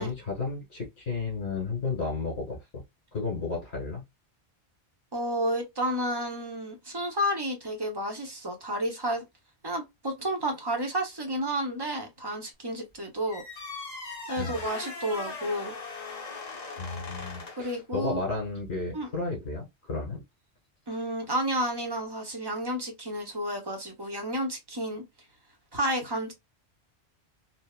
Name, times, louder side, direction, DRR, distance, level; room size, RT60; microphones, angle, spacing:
voice 1, 0.0-2.8 3.1-4.0 14.4-14.5 16.8-20.2, left 3 dB, 75° left, 2.0 m, -33 dB
voice 2, 5.1-9.2 9.6-13.4 14.3-15.7 17.6-18.2 18.9-19.1 20.9-25.0 25.7-26.3, equal, 25° right, 0.8 m, -31 dB
sound 1, 13.3-17.7, left 4 dB, 40° left, 1.0 m, -39 dB
3.9 x 2.0 x 2.3 m
omnidirectional pair, 1.1 m